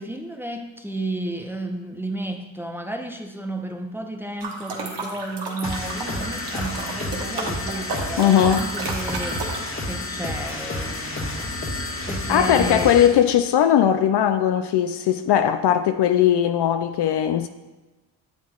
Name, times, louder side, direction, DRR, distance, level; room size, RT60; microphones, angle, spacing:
voice 1, 0.0-9.4 9.8-11.5 12.1-13.1, right 1 dB, 5° right, 0.8 m, -32 dB
sound 1, 4.4-9.7, right 3 dB, 60° right, 1.4 m, -32 dB
sound 2, 5.6-13.2, left 2 dB, 25° left, 1.4 m, -30 dB
voice 2, 8.2-8.7 12.3-17.5, left 10 dB, 60° left, 0.5 m, -19 dB
7.5 x 7.4 x 2.4 m
supercardioid pair, 40°, 47 cm